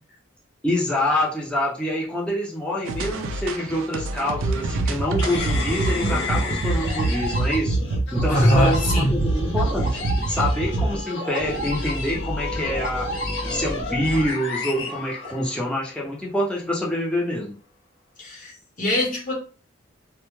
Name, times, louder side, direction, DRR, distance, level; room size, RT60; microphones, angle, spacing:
voice 1, 0.6-7.8 8.1-10.0 10.3-13.1 13.4-17.5, left 1 dB, 5° left, -5 dB, 0.5 m, -26 dB
sound 1, 2.9-10.9, right 2 dB, 85° right, 0.4 m, -25 dB
sound 2, 5.2-15.8, left 1 dB, 70° left, 0.8 m, -29 dB
voice 2, 8.3-9.2 18.2-18.5 18.8-19.3, equal, 40° left, -2 dB, 0.9 m, -21 dB
2.2 x 2.1 x 3.0 m, 0.36 s
head